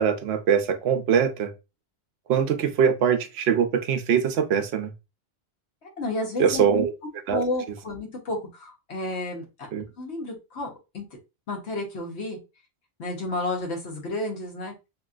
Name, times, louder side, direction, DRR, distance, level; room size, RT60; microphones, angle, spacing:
voice 1, 0.0-1.5 2.3-4.9 6.4-6.9 7.3-7.4 9.7-9.8, right 7 dB, 75° right, 0.8 m, -22 dB
voice 2, 5.8-6.8 7.3-9.4 10.0-11.0 11.5-12.4 13.0-14.7, left 2 dB, 85° left, 1.3 m, -31 dB
2.9 x 2.9 x 2.4 m
omnidirectional pair, 1.1 m